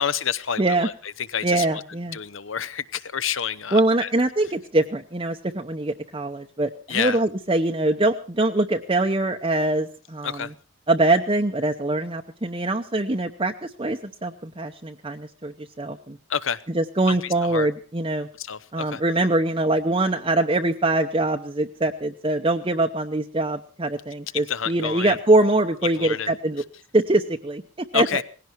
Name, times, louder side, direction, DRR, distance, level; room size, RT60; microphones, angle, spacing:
voice 1, 0.0-1.7 2.1-4.1 6.9-7.2 10.2-10.5 16.3-16.6 17.2-17.7 18.4-19.0 24.5-25.2 26.0-26.3 27.9-28.2, left 8 dB, 70° left, 15 dB, 0.9 m, -28 dB
voice 2, 0.6-0.9 1.4-2.2 3.7-10.5 10.9-16.2 16.7-18.3 18.7-26.6 26.9-27.6 27.9-28.2, right 2 dB, 25° right, 3 dB, 0.8 m, -23 dB
19.0 x 16.5 x 4.5 m, 0.37 s
head